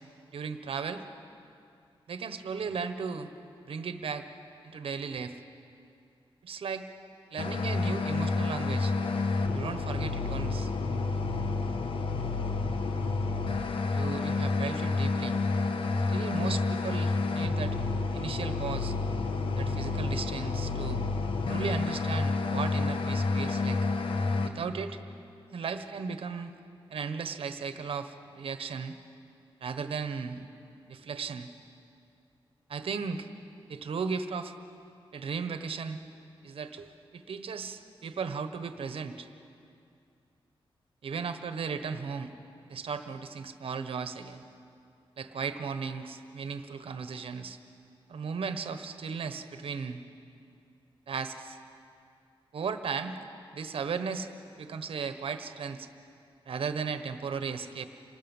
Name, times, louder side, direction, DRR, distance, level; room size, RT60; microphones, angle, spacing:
voice 1, 0.3-1.0 2.1-3.3 3.7-4.3 4.7-5.4 6.4-6.9 7.3-8.9 9.5-10.7 13.9-15.4 16.1-17.8 18.1-19.0 19.6-21.0 21.5-23.9 24.4-25.0 25.5-26.5 26.9-28.9 29.6-30.5 30.9-31.5 32.7-33.3 33.7-34.5 35.1-36.0 36.4-39.3 41.0-42.3 42.7-44.4 45.2-47.6 48.1-50.0 51.1-51.6 52.5-53.2 53.5-54.3 54.6-55.9 56.5-57.9, right 5 dB, 75° right, 9 dB, 1.3 m, -36 dB
sound 1, 7.4-24.5, left 3 dB, 65° left, 1.4 m, -29 dB
27.0 x 19.0 x 7.4 m, 2.5 s
wide cardioid pair, 140°, 10 cm